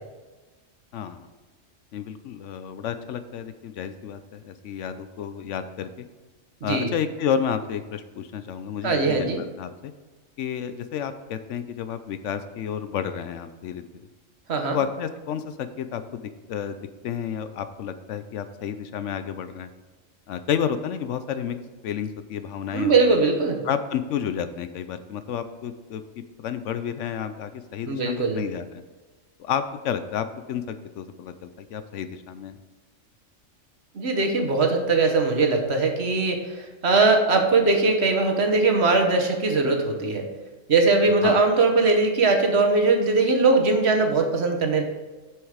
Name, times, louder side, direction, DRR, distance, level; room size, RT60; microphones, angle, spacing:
voice 1, 0.9-1.3 1.9-6.1 6.6-9.3 9.6-9.9 10.4-13.8 14.7-19.7 20.3-21.6 21.8-23.2 23.6-28.8 29.4-32.6 41.2-41.4, left 8 dB, 70° left, 11 dB, 0.9 m, -31 dB
voice 2, 6.6-6.9 8.8-9.4 14.5-14.8 22.7-23.6 27.9-28.4 33.9-40.3 40.7-44.8, right 3 dB, 55° right, 4 dB, 1.3 m, -21 dB
7.9 x 6.3 x 5.0 m, 1.2 s
omnidirectional pair, 1.4 m